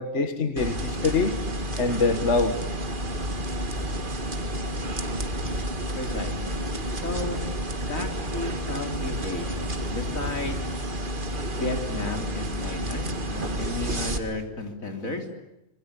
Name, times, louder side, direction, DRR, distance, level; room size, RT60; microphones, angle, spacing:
voice 1, 0.0-1.3 1.8-2.5, left 4 dB, 60° left, 8 dB, 1.9 m, -24 dB
sound 1, 0.6-14.2, right 1 dB, 40° right, 2.0 m, -30 dB
sound 2, 3.5-11.1, left 1 dB, 25° left, 6.1 m, -43 dB
voice 2, 6.0-6.6 7.0-7.5 7.8-10.6 11.5-15.3, left 2 dB, 90° left, 5 dB, 3.9 m, -33 dB
26.5 x 21.5 x 9.9 m, 0.89 s
omnidirectional pair, 1.4 m